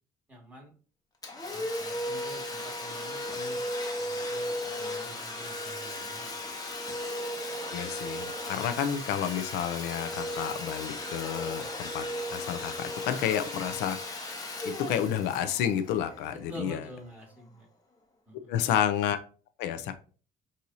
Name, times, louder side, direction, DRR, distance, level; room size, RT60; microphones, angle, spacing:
voice 1, 0.3-0.7 1.5-3.6 4.0-6.3 13.7-13.8 16.3-17.7 18.3-18.6, equal, 10° right, -3 dB, 1.9 m, -47 dB
Domestic sounds home sounds, 1.2-16.7, left 1 dB, 20° left, 1.0 m, -36 dB
voice 2, 7.7-14.3 14.6-16.8 18.5-19.2 19.6-19.9, left 9 dB, 90° left, 9 dB, 0.5 m, -30 dB
6.2 x 2.7 x 2.7 m, 0.38 s
cardioid pair, 110°, 17 cm